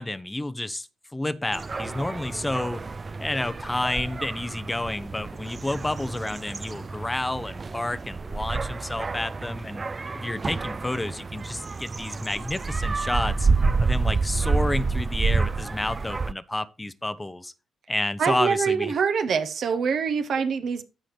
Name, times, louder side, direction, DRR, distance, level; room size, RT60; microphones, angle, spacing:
voice 1, 0.0-2.8 3.2-9.8 10.1-13.5 13.8-17.5 17.9-18.9, left 1 dB, 15° left, 0.7 m, -30 dB
sound 1, 1.5-16.3, right 4 dB, 35° right, 0.4 m, -29 dB
voice 2, 18.2-20.8, right 6 dB, 65° right, 0.9 m, -24 dB
14.5 x 4.9 x 3.1 m
supercardioid pair, 55°, 0 cm